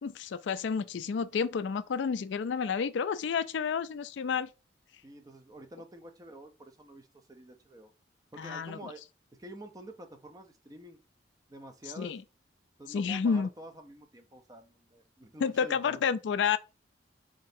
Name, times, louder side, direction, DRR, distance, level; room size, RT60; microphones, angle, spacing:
voice 1, 0.0-4.5 8.4-8.9 12.0-12.2 12.9-13.5 15.4-16.6, left 6 dB, 75° left, 0.4 m, -30 dB
voice 2, 5.0-7.9 8.3-9.0 9.4-11.0 11.5-12.2 12.8-16.0, right 1 dB, 20° right, 0.6 m, -48 dB
3.8 x 3.7 x 2.6 m
head